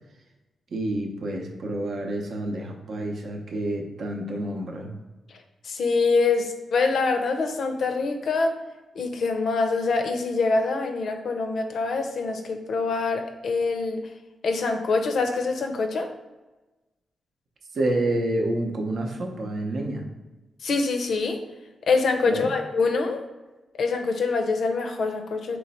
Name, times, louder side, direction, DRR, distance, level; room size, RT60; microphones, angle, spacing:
voice 1, 0.7-5.0 17.7-20.1 22.3-22.5, right 1 dB, 65° right, 2 dB, 0.6 m, -28 dB
voice 2, 5.6-8.6 8.9-14.1 14.4-16.1 20.6-21.4 21.9-23.2 23.8-25.6, left 4 dB, 70° left, 5 dB, 0.5 m, -25 dB
3.1 x 3.1 x 4.1 m, 1.1 s
cardioid pair, 85°, 0 cm